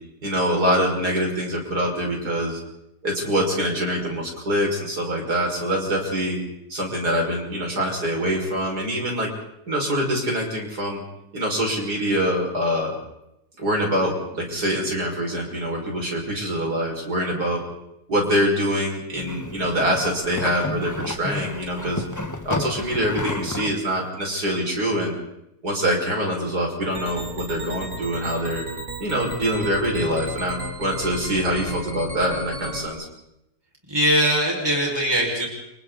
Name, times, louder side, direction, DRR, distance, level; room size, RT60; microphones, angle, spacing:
voice 1, 0.2-2.6 3.0-6.4 6.7-9.3 9.7-11.0 11.3-13.0 13.6-17.6 18.1-22.0 22.4-25.1 25.6-28.6 29.0-33.0, equal, 80° right, -1 dB, 6.3 m, -24 dB
sound 1, 19.1-23.8, left 1 dB, 15° left, 1.2 m, -31 dB
sound 2, 26.9-32.9, right 1 dB, 50° right, 3.5 m, -34 dB
voice 2, 33.9-35.5, equal, 15° right, -1 dB, 5.7 m, -21 dB
30.0 x 26.0 x 4.1 m, 0.85 s
omnidirectional pair, 1.7 m